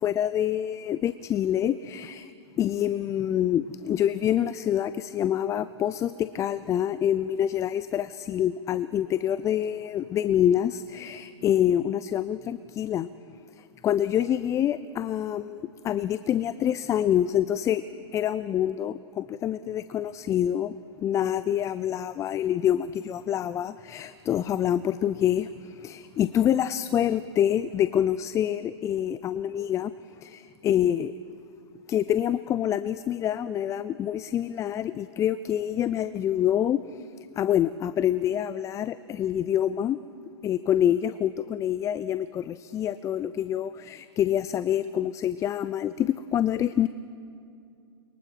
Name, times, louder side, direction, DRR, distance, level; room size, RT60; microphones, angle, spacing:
voice 1, 0.0-2.3 2.6-13.1 13.6-17.8 18.1-29.9 30.2-31.1 31.9-37.1 37.4-40.0 40.4-46.9, left 10 dB, 20° left, 15 dB, 0.5 m, -26 dB
29.5 x 23.5 x 4.6 m, 2.5 s
hypercardioid pair, 110°, 15 cm